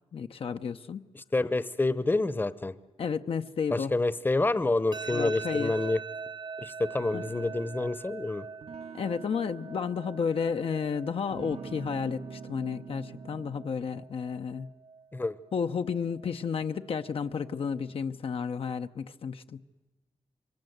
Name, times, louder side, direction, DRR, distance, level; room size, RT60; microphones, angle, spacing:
voice 1, 0.1-1.0 3.0-3.9 5.1-5.7 7.1-7.2 8.9-14.7 15.5-19.6, left 6 dB, 70° left, 7 dB, 0.7 m, -32 dB
voice 2, 1.1-2.7 3.7-6.0 6.6-8.4 15.1-15.4, left 2 dB, 20° left, 15 dB, 0.8 m, -28 dB
sound 1, 4.9-17.9, right 5 dB, 60° right, 1.2 m, -44 dB
sound 2, 6.9-8.0 8.6-10.9 11.3-13.9, right 5 dB, 85° right, 1.3 m, -46 dB
27.0 x 23.0 x 7.9 m, 1.2 s
wide cardioid pair, 95°, 10 cm